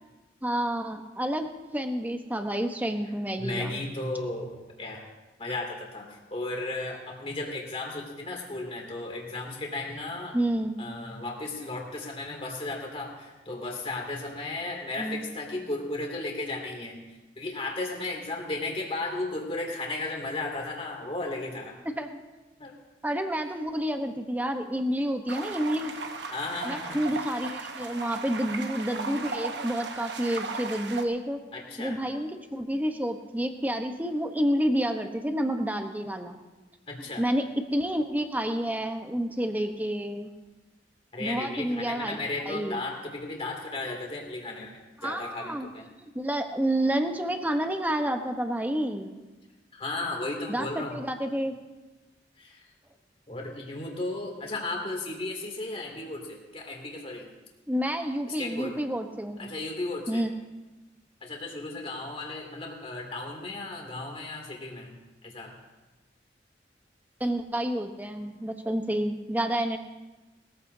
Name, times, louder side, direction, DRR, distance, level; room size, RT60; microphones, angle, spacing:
voice 1, 0.4-3.8 10.3-10.8 15.0-15.2 22.0-22.1 23.0-25.9 26.6-31.4 31.8-36.4 37.2-40.3 41.2-42.2 42.5-42.8 45.0-45.7 46.0-49.1 50.5-51.5 57.7-59.5 60.1-60.3 67.2-69.8, right 1 dB, 10° right, 5 dB, 1.0 m, -29 dB
voice 2, 3.4-5.0 5.4-10.4 10.8-17.0 17.4-21.8 22.6-22.7 26.3-27.0 31.5-32.0 36.9-37.3 41.1-45.9 49.7-51.0 52.4-52.6 53.3-57.3 58.3-58.8 59.4-60.2 61.2-65.0 65.2-65.6, left 2 dB, 35° left, 0 dB, 2.7 m, -35 dB
sound 1, 25.3-31.0, right 4 dB, 75° right, 1.1 m, -36 dB
20.5 x 14.5 x 2.8 m, 1.1 s
head